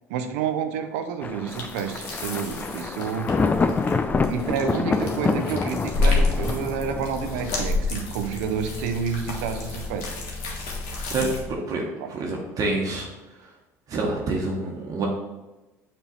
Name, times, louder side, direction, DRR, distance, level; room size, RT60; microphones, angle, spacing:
voice 1, 0.1-3.3 4.3-10.1 11.2-11.3 12.0-12.1, right 6 dB, 70° right, 7 dB, 0.7 m, -29 dB
Thunder, 1.2-7.6, left 4 dB, 20° left, 0.4 m, -27 dB
sound 1, 1.5-11.4, left 3 dB, 70° left, 1.4 m, -30 dB
sound 2, 6.1-11.5, left 2 dB, ahead, 0.8 m, -38 dB
voice 2, 11.1-11.8 12.1-13.1 13.9-15.1, right 2 dB, 45° right, -1 dB, 1.2 m, -27 dB
7.4 x 3.4 x 4.1 m, 1.1 s
hypercardioid pair, 65°, 8 cm